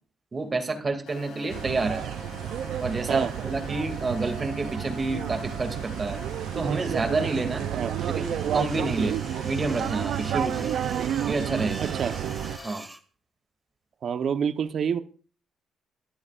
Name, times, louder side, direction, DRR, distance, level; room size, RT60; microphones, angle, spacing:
voice 1, 0.3-2.0 2.8-6.2 6.5-7.6 8.1-9.1 9.4-10.7 11.2-11.9 12.6-12.8, right 3 dB, 30° right, 2.7 m, -29 dB
sound 1, 1.1-12.7, left 5 dB, 80° left, 7.4 m, -44 dB
sound 2, 1.5-12.6, right 10 dB, 75° right, 0.6 m, -31 dB
sound 3, 8.0-13.0, right 1 dB, 10° right, 2.0 m, -45 dB
voice 2, 11.8-12.2 14.0-15.0, right 7 dB, 60° right, 1.1 m, -27 dB
24.5 x 12.0 x 2.6 m
cardioid pair, 90°, 0 cm